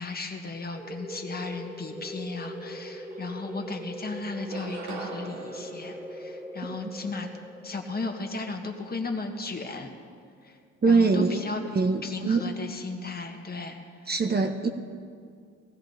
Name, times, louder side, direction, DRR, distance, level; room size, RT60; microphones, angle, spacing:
voice 1, 0.0-7.3 7.6-9.9 10.4-10.6 10.9-11.6 12.0-13.8, left 3 dB, 30° left, 3 dB, 1.7 m, -35 dB
sound 1, 0.7-10.1, equal, 10° right, 2.1 m, -41 dB
sound 2, 2.7-2.8 3.1-3.9 4.3-6.9, right 3 dB, 90° right, 1.9 m, -43 dB
voice 2, 10.8-11.4 11.7-12.4 14.1-14.7, right 4 dB, 30° right, 5 dB, 1.0 m, -23 dB
18.5 x 14.0 x 4.0 m, 2.2 s
cardioid pair, 90°, 30 cm